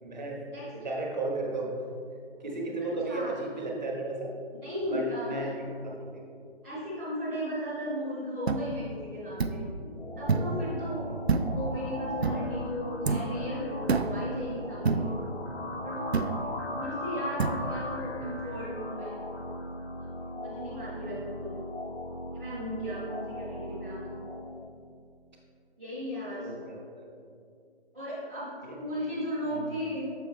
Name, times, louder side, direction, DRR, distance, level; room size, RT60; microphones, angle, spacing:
voice 1, 0.0-0.4 0.7-1.8 2.4-4.3 4.9-6.2 16.4-16.8 26.4-27.1 28.6-28.7 29.4-29.7, right 2 dB, 45° right, -2 dB, 1.1 m, -35 dB
voice 2, 2.8-3.4 4.6-5.5 6.6-9.7 10.2-11.1 11.4-15.0 15.8-16.0 16.7-19.2 20.3-21.6 22.3-24.2 25.8-26.5 27.9-30.0, equal, 5° right, -18 dB, 0.7 m, -36 dB
sound 1, 8.5-8.6 9.4-9.6 10.3-10.6 11.3-11.7 12.2-12.5 13.0-13.4 13.9-14.2 14.8-15.2 16.1-16.4 17.4-17.6, right 4 dB, 80° right, 0.5 m, -27 dB
sound 2, 9.7-24.7, left 1 dB, 85° left, 0.7 m, -38 dB
6.8 x 4.5 x 3.3 m, 2.3 s
figure-of-eight pair, 150°, 32 cm